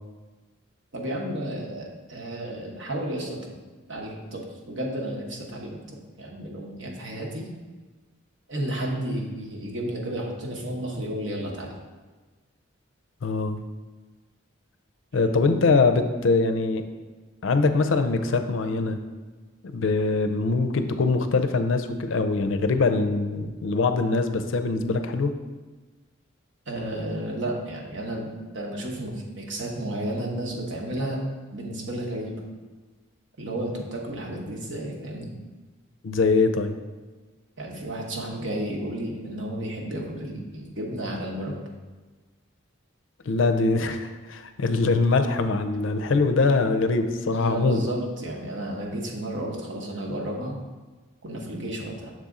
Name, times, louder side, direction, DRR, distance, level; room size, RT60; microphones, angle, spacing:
voice 1, 0.9-3.4 3.9-5.8 6.2-7.5 8.5-11.7 26.7-28.3 28.5-31.2 31.5-32.3 33.4-35.3 37.6-41.5 47.3-50.6 51.2-52.1, right 1 dB, 65° right, -1 dB, 1.0 m, -32 dB
voice 2, 13.2-13.6 15.1-16.8 17.4-19.0 19.6-25.3 36.0-36.7 43.3-47.8, left 3 dB, 70° left, 8 dB, 0.4 m, -23 dB
6.4 x 4.1 x 3.7 m, 1.3 s
head